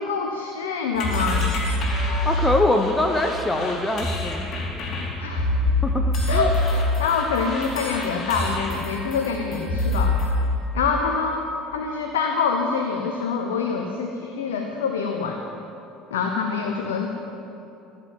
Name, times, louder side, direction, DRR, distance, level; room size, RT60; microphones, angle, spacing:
voice 1, 0.0-1.5 5.2-5.5 6.3-10.2 10.7-15.4 16.1-17.1, left 5 dB, 75° left, 3 dB, 0.8 m, -25 dB
sound 1, 0.9-10.4, left 2 dB, 45° left, 2.9 m, -25 dB
voice 2, 2.2-4.5 5.8-6.5, left 1 dB, 15° left, 4 dB, 0.9 m, -23 dB
14.0 x 7.7 x 7.5 m, 2.9 s
figure-of-eight pair, 65°, 0 cm